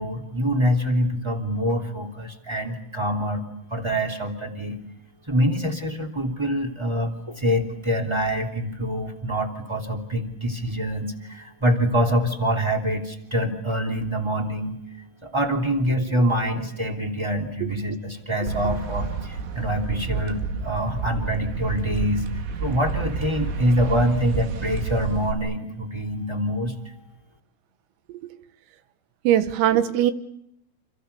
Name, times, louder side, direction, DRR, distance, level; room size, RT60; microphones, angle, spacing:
voice 1, 0.0-3.4 3.7-4.7 5.3-14.7 15.2-22.2 22.6-26.7, equal, 10° right, 3 dB, 1.6 m, -25 dB
sound 1, 18.5-25.3, right 5 dB, 70° right, 4.4 m, -30 dB
voice 2, 29.3-30.1, right 11 dB, 85° right, 11 dB, 4.2 m, -20 dB
29.0 x 28.5 x 7.0 m, 0.76 s
omnidirectional pair, 5.9 m